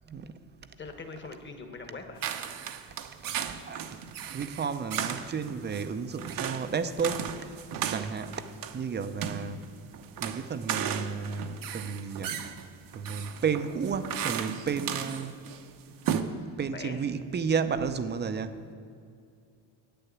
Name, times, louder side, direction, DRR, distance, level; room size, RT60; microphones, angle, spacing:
voice 1, 0.1-0.4 3.7-4.0 4.3-7.3 7.9-8.4 8.7-9.6 10.2-12.4 12.9-15.4 16.6-18.6, right 6 dB, 25° right, 11 dB, 0.5 m, -32 dB
voice 2, 0.8-2.2 16.7-17.0, left 4 dB, 30° left, 5 dB, 1.3 m, -42 dB
sound 1, 2.2-15.6 15.9-16.2, right 9 dB, 55° right, 0.8 m, -35 dB
8.5 x 6.8 x 8.5 m, 2.4 s
cardioid pair, 110°, 40 cm